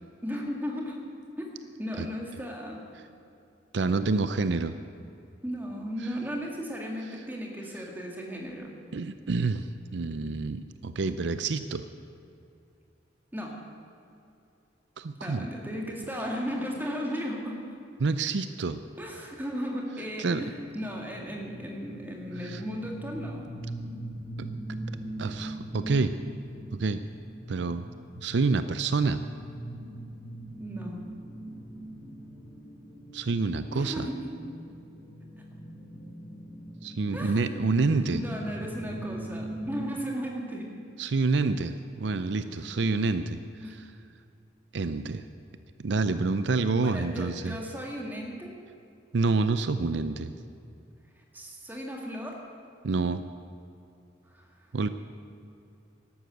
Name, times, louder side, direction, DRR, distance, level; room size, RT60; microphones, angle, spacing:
voice 1, 0.2-1.1 1.4-3.0 5.4-8.7 13.3-13.6 15.2-17.6 19.0-23.4 30.6-31.0 33.7-34.4 37.1-37.6 37.9-40.9 42.5-42.6 43.6-43.8 46.8-48.5 51.2-52.4 54.3-54.7, equal, 10° right, 0 dB, 2.0 m, -36 dB
voice 2, 3.7-4.7 8.9-11.9 15.0-15.5 18.0-18.8 20.2-20.5 22.4-22.6 24.4-24.5 25.2-26.2 26.7-27.0 27.5-27.9 28.2-29.2 33.1-34.1 36.8-38.2 41.0-43.9 44.7-45.3 45.8-47.6 49.1-50.3 52.8-53.2 54.7-54.9, right 3 dB, 70° right, 11 dB, 0.5 m, -28 dB
Ghost wails, 20.5-39.9, right 1 dB, 75° left, 4.6 m, -41 dB
12.5 x 12.0 x 7.9 m, 2.6 s
head